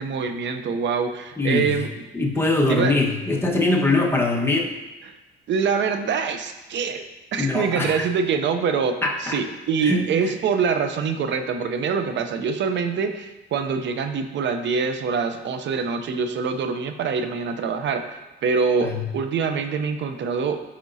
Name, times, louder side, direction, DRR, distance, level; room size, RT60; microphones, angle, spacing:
voice 1, 0.0-1.9 2.7-3.0 5.0-5.2 5.5-7.0 7.3-20.6, right 5 dB, 65° right, 8 dB, 0.7 m, -25 dB
voice 2, 1.4-1.8 2.1-4.7 7.4-8.0 9.0-9.4 9.8-10.1 18.8-19.0, left 2 dB, 10° left, -1 dB, 1.3 m, -22 dB
11.5 x 4.4 x 2.7 m, 1.1 s
cardioid pair, 90°, 20 cm